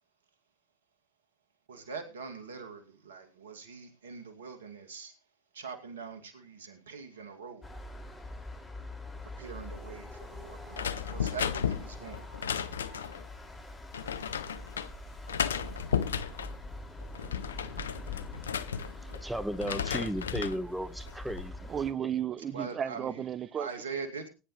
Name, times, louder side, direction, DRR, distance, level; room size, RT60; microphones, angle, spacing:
voice 1, 1.7-5.1 5.5-7.7 9.2-13.2 22.5-23.2 23.6-24.3, right 5 dB, 85° right, 2.3 m, -43 dB
sound 1, 7.6-21.9, left 1 dB, 20° left, 5.3 m, -44 dB
sound 2, 10.7-13.2 13.9-14.9 15.3-16.5 17.0-19.2 19.5-20.6 21.1-21.5, left 8 dB, 85° left, 0.6 m, -34 dB
voice 2, 19.0-21.7 22.0-22.1, equal, 5° right, 1.4 m, -35 dB
voice 3, 21.7-23.7, right 9 dB, 40° right, 0.7 m, -33 dB
19.5 x 10.0 x 3.2 m
hypercardioid pair, 70°, 0 cm